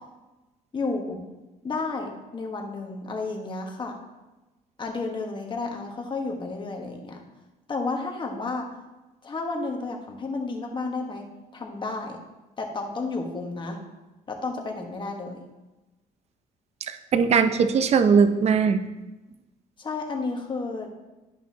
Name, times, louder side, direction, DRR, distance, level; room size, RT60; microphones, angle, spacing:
voice 1, 0.7-1.2 1.6-4.0 4.8-7.2 7.7-8.7 9.2-11.2 11.5-12.2 12.6-13.8 14.3-15.4 19.8-20.9, left 3 dB, 30° left, 1 dB, 1.5 m, -31 dB
voice 2, 16.9-18.8, right 6 dB, 40° right, 9 dB, 0.6 m, -20 dB
11.0 x 5.4 x 2.9 m, 1.1 s
cardioid pair, 110°, 17 cm